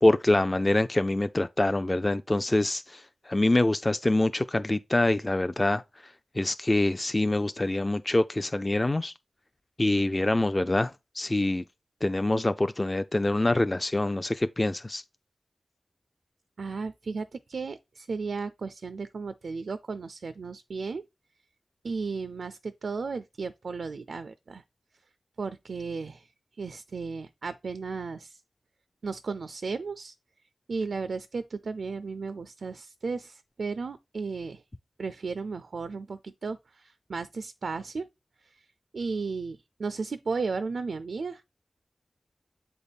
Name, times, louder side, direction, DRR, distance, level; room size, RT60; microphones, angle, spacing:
voice 1, 0.0-3.0 3.3-5.8 6.4-9.1 9.8-10.9 11.2-11.6 12.0-15.0, left 2 dB, 30° left, 0.4 m, -25 dB
voice 2, 16.6-21.0 21.8-24.6 25.4-26.3 26.6-28.4 29.0-30.1 30.7-34.6 35.0-38.0 38.5-38.6 38.9-41.4, right 4 dB, 80° right, 0.4 m, -34 dB
7.9 x 3.5 x 4.0 m
wide cardioid pair, 60°, 0 cm